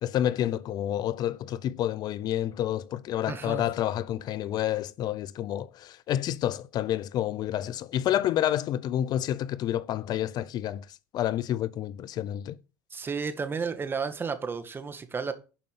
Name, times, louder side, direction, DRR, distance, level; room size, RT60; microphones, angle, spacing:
voice 1, 0.0-10.9 11.1-12.6, left 12 dB, 50° left, 0.6 m, -29 dB
voice 2, 3.3-3.6 12.9-15.3, right 5 dB, 25° right, 1.9 m, -32 dB
11.5 x 5.4 x 6.9 m
supercardioid pair, 90°, 9 cm